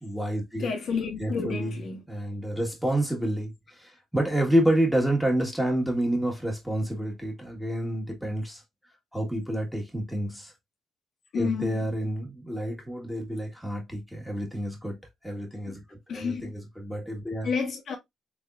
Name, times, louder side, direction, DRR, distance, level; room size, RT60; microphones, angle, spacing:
voice 1, 0.0-0.7 1.2-1.7 2.1-8.6 9.1-10.5 11.3-15.0 15.2-17.5, right 1 dB, ahead, 1.5 m, -28 dB
voice 2, 0.6-2.0 11.3-11.9 15.7-15.8 16.1-16.5 17.4-18.0, left 5 dB, 60° left, 1.1 m, -30 dB
3.5 x 3.5 x 2.4 m
cardioid pair, 90°, 0 cm